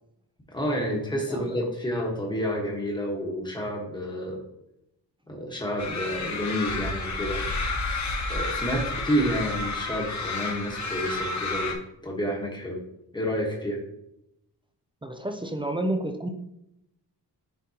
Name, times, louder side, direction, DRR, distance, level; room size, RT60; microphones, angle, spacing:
voice 1, 0.5-4.4 5.3-7.4 8.3-11.8 12.0-12.8 13.1-13.8, equal, 10° left, -1 dB, 1.2 m, -29 dB
voice 2, 1.3-1.6 15.0-16.3, right 1 dB, 15° right, 6 dB, 0.4 m, -30 dB
sound 1, 5.8-11.7, left 3 dB, 45° left, 1.0 m, -30 dB
10.0 x 3.8 x 2.8 m, 0.82 s
wide cardioid pair, 175°, 39 cm